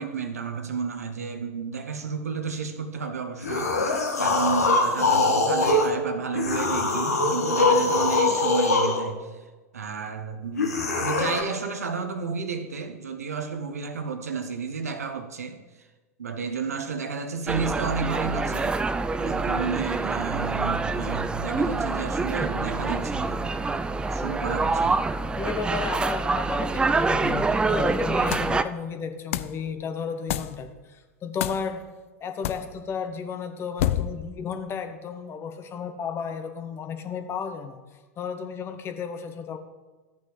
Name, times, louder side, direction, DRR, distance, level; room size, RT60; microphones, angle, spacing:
voice 1, 0.0-9.4 9.7-15.9 16.2-18.8 19.2-25.0, right 5 dB, 75° right, 8 dB, 1.0 m, -32 dB
sound 1, 3.4-5.9 6.3-9.0 10.6-11.4, left 3 dB, 85° left, 1.5 m, -23 dB
sound 2, 17.5-28.6, right 3 dB, 10° right, 0.4 m, -26 dB
voice 2, 25.3-31.9 32.2-37.8 38.2-39.6, left 6 dB, 30° left, 8 dB, 1.0 m, -33 dB
sound 3, 28.3-28.6 29.3-29.6 30.3-30.6 31.4-31.7 32.4-32.7 33.8-34.3, left 12 dB, 60° left, 0.4 m, -28 dB
13.5 x 8.6 x 3.2 m, 1.2 s
figure-of-eight pair, 90°, 8 cm